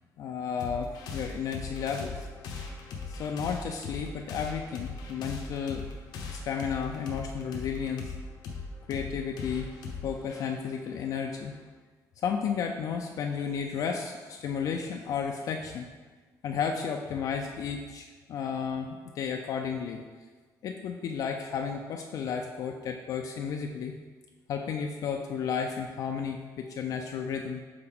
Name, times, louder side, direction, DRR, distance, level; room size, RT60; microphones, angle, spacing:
voice 1, 0.2-2.3 3.1-5.9 6.3-8.1 8.9-9.7 10.0-11.5 12.2-15.9 16.4-20.0 20.6-24.0 24.5-27.6, left 6 dB, 55° left, 3 dB, 0.4 m, -33 dB
sound 1, 0.6-11.7, left 4 dB, 90° left, 0.9 m, -40 dB
6.8 x 4.2 x 3.5 m, 1.4 s
cardioid pair, 155°, 7 cm